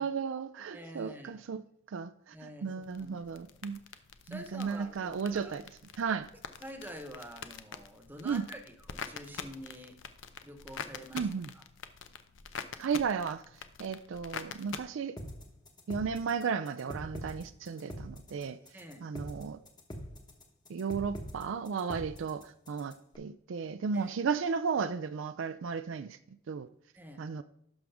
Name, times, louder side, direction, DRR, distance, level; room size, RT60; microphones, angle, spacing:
voice 1, 0.0-1.6 1.9-3.8 4.3-5.6 6.0-6.3 8.2-8.4 11.1-11.5 12.8-13.4 13.8-15.2 15.9-18.6 19.0-19.6 20.7-26.2 26.5-26.7 27.2-27.4, right 6 dB, 65° right, 0.4 m, -34 dB
voice 2, 0.7-1.6 2.3-3.7 4.2-5.5 6.6-10.0 10.4-11.3 11.5-11.6 18.7-19.0 23.9-24.1 26.9-27.2, equal, 10° right, 1.1 m, -47 dB
sound 1, 2.8-14.8, left 6 dB, 65° left, 0.7 m, -46 dB
sound 2, 15.2-23.1, equal, 20° left, 1.3 m, -44 dB
11.0 x 6.2 x 3.5 m
head